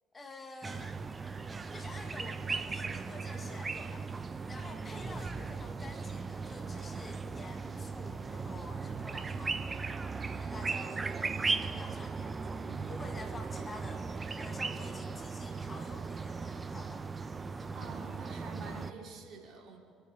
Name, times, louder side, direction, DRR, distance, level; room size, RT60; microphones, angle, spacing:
voice 1, 0.1-1.0 1.7-4.1 4.5-9.6 10.3-11.0 11.6-12.5 12.9-14.0 14.4-17.1, left 2 dB, 30° left, 5 dB, 2.0 m, -49 dB
sound 1, 0.6-18.9, right 4 dB, 30° right, 0.8 m, -37 dB
voice 2, 17.7-19.8, right 4 dB, 50° right, 0 dB, 2.9 m, -47 dB
27.0 x 10.0 x 4.8 m, 2.3 s
figure-of-eight pair, 50°, 0 cm